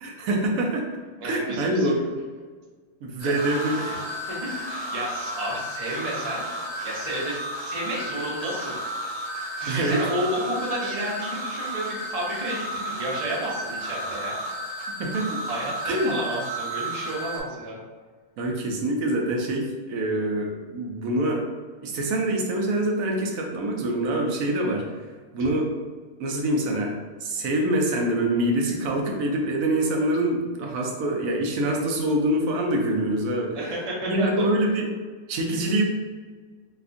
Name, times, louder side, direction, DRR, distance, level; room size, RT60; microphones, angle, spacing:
voice 1, 0.0-0.9 1.2-2.0 3.0-4.3 9.7-10.0 14.9-15.4 15.8-16.1 18.4-21.4 21.8-24.9 25.3-25.7 26.2-33.6 34.1-34.9 35.3-35.8, right 1 dB, 70° right, 0 dB, 1.0 m, -25 dB
voice 2, 1.2-2.0 3.2-3.4 4.3-6.5 6.8-8.7 9.6-14.4 15.5-17.8 33.5-34.5, right 1 dB, 30° right, -5 dB, 0.7 m, -31 dB
sound 1, 3.2-17.4, right 1 dB, 75° left, 2.1 m, -33 dB
4.1 x 2.3 x 2.5 m, 1.5 s
omnidirectional pair, 1.6 m